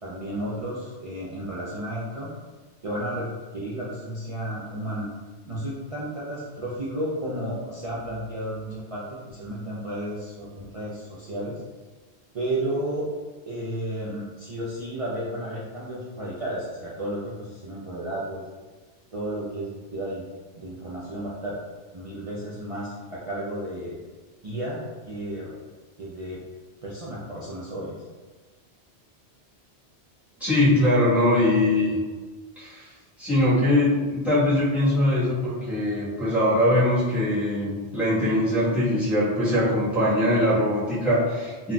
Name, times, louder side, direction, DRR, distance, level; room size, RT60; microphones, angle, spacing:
voice 1, 0.0-2.3 2.8-5.1 5.5-11.6 12.3-13.1 13.5-18.4 19.1-20.3 20.6-21.6 21.9-24.0 24.4-25.6 26.0-26.4 26.8-28.0, right 1 dB, 55° right, -7 dB, 0.4 m, -32 dB
voice 2, 30.4-32.0 32.6-32.9 33.2-41.7, left 1 dB, ahead, -10 dB, 1.0 m, -22 dB
3.8 x 2.2 x 2.2 m, 1.4 s
omnidirectional pair, 1.1 m